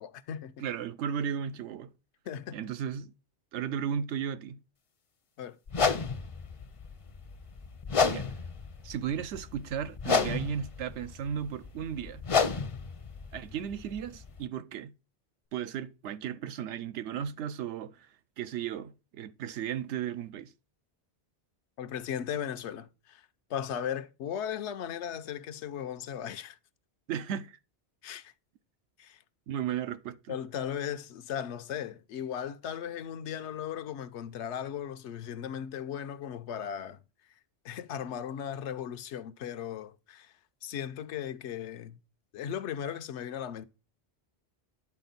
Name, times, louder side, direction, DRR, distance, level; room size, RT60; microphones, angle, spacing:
voice 1, 0.0-0.5 2.3-2.7 5.4-5.6 21.8-23.2 23.5-26.6 28.0-28.3 29.0-29.2 30.3-37.0 37.6-40.3 40.6-42.0 42.3-43.7, left 9 dB, 85° left, 0.9 m, -37 dB
voice 2, 0.6-1.9 2.5-3.1 3.5-4.6 8.0-8.3 8.8-12.2 13.3-14.9 15.5-18.1 18.4-20.5 27.1-27.6 29.5-30.4, right 8 dB, 85° right, 0.9 m, -35 dB
sound 1, 5.7-14.4, left 5 dB, 40° left, 0.5 m, -32 dB
9.8 x 4.3 x 4.0 m
omnidirectional pair, 1.1 m